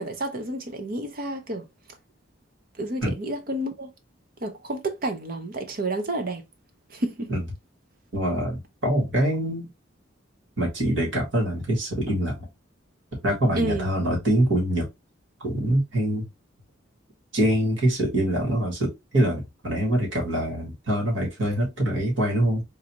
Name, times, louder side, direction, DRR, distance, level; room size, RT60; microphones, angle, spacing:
voice 1, 0.0-1.7 2.8-3.9 4.4-6.4 6.9-7.3 13.5-13.9, right 1 dB, 45° right, 0.7 m, -30 dB
voice 2, 8.1-9.7 10.6-12.5 13.2-14.9 15.4-16.3 17.3-22.6, right 1 dB, 65° right, 2.0 m, -24 dB
4.0 x 2.6 x 3.0 m
head